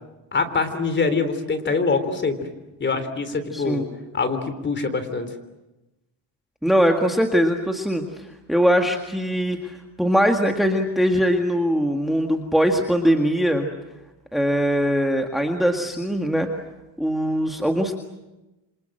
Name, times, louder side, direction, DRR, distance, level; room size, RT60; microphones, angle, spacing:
voice 1, 0.3-2.4 2.8-3.8 4.1-5.3, left 4 dB, 25° left, 10 dB, 3.4 m, -24 dB
voice 2, 3.5-3.8 6.6-13.7 14.3-16.5 17.0-18.0, equal, ahead, 3 dB, 1.8 m, -21 dB
28.0 x 26.0 x 7.8 m, 1.0 s
cardioid pair, 145°, 44 cm